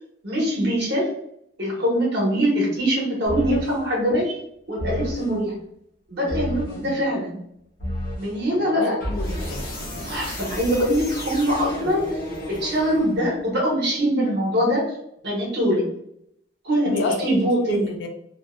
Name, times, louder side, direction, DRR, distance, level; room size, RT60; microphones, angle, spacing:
voice 1, 0.2-1.1 1.6-4.3 4.7-5.5 6.1-7.4 8.2-9.0 10.0-12.2 12.5-14.9 15.2-15.9 16.6-17.8, equal, 65° right, -4 dB, 0.9 m, -23 dB
sound 1, 3.3-3.8 4.8-5.3 6.3-6.8 7.8-8.3 9.0-13.4, left 1 dB, 55° left, 0.8 m, -31 dB
voice 2, 6.7-7.0 8.5-9.6 16.9-18.1, left 3 dB, 75° left, 4 dB, 0.4 m, -30 dB
2.4 x 2.1 x 2.4 m, 0.74 s
head